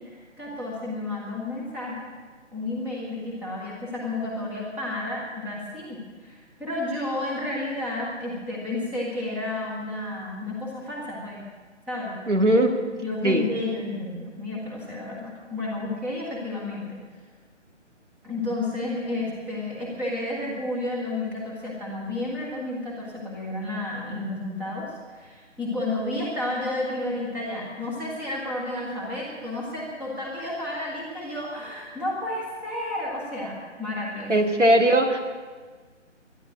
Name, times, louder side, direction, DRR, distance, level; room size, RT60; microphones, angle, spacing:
voice 1, 0.0-2.1 2.5-11.4 11.9-12.2 13.0-17.0 18.2-34.3, left 2 dB, 5° right, -5 dB, 1.6 m, -31 dB
voice 2, 12.3-12.8 13.2-13.4 34.3-35.2, right 1 dB, 75° right, 6 dB, 2.1 m, -19 dB
12.5 x 11.0 x 8.8 m, 1.5 s
figure-of-eight pair, 150°, 36 cm